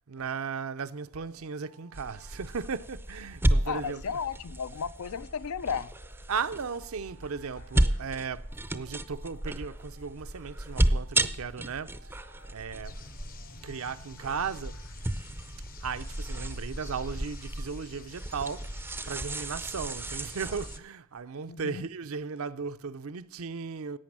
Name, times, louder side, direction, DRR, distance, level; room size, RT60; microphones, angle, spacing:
voice 1, 0.1-4.2 6.3-12.2 12.5-13.0 13.6-14.8 15.8-18.7 19.1-24.0, right 5 dB, 65° right, 0.6 m, -36 dB
sound 1, 1.1-15.0, left 1 dB, 85° left, 4.8 m, -60 dB
sound 2, 1.9-20.8, right 1 dB, 10° right, 0.5 m, -33 dB
voice 2, 3.7-5.9 21.5-21.9, left 7 dB, 70° left, 0.4 m, -34 dB
sound 3, 12.8-20.8, left 4 dB, 40° left, 0.7 m, -50 dB
11.5 x 8.5 x 7.4 m
head